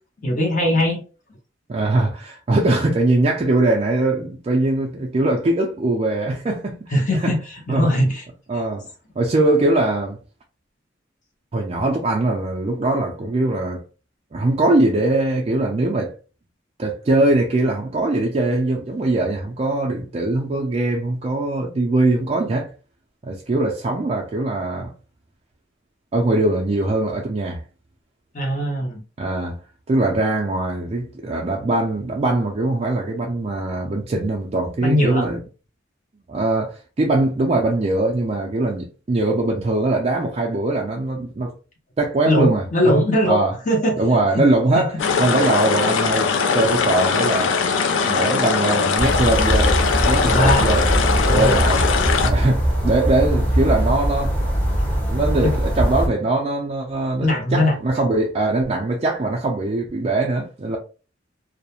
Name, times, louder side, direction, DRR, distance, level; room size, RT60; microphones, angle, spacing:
voice 1, 0.2-1.0 6.9-7.4 7.7-8.3 28.3-29.0 34.8-35.3 42.3-44.0 44.7-44.9 50.2-50.7 51.3-51.6 55.4-55.5 57.2-57.8, left 1 dB, 45° left, 0.7 m, -20 dB
voice 2, 1.7-7.3 7.7-7.9 8.5-8.8 9.2-10.2 11.5-13.8 14.3-16.1 16.8-22.7 23.2-24.9 26.1-27.6 29.2-29.6 29.9-35.4 36.3-41.5 42.0-43.5 44.0-47.5 48.0-49.7 50.0-51.8 52.2-54.3 55.1-60.8, right 2 dB, 30° right, 0.3 m, -21 dB
sound 1, 45.0-52.3, left 5 dB, 90° left, 0.4 m, -20 dB
sound 2, 49.0-56.1, equal, 10° left, 0.7 m, -21 dB
2.3 x 2.0 x 2.8 m
head